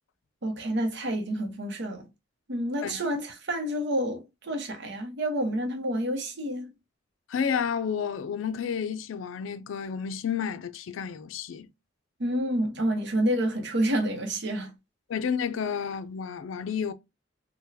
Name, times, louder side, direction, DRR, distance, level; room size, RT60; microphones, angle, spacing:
voice 1, 0.4-2.1 2.5-6.7 12.2-14.7, right 1 dB, 65° right, 0.8 m, -29 dB
voice 2, 7.3-11.7 15.1-16.9, left 7 dB, 85° left, 0.4 m, -31 dB
3.8 x 2.2 x 2.6 m
head